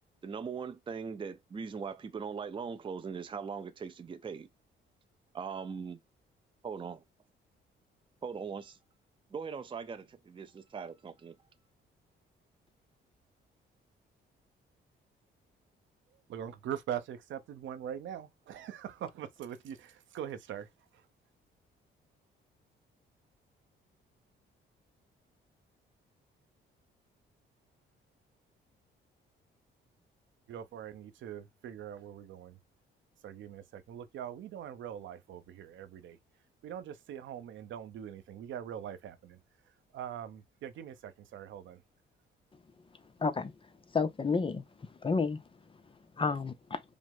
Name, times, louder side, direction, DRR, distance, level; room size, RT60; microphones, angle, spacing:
voice 1, 0.2-4.5 5.3-6.0 6.6-7.0 8.2-8.8 9.3-11.4, right 6 dB, 25° right, 0.5 m, -40 dB
voice 2, 16.3-20.7 30.5-32.6 33.2-36.2 36.6-39.4 39.9-41.8, right 9 dB, 75° right, 0.7 m, -42 dB
voice 3, 43.2-43.5 43.9-44.6 45.0-45.4 46.2-46.8, left 4 dB, 25° left, 0.5 m, -30 dB
5.0 x 2.1 x 3.6 m
cardioid pair, 90°, 20 cm